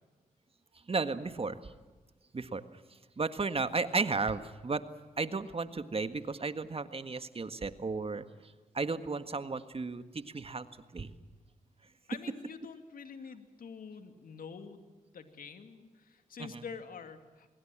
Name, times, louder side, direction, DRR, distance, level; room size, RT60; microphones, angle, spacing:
voice 1, 0.9-1.7 2.3-2.7 3.2-4.9 5.2-8.2 8.7-10.7 10.9-11.1 16.4-16.6, right 4 dB, 40° right, 11 dB, 1.7 m, -34 dB
voice 2, 12.1-17.5, left 5 dB, 75° left, 8 dB, 2.5 m, -47 dB
25.5 x 22.5 x 7.5 m, 1.3 s
cardioid pair, 55°, 15 cm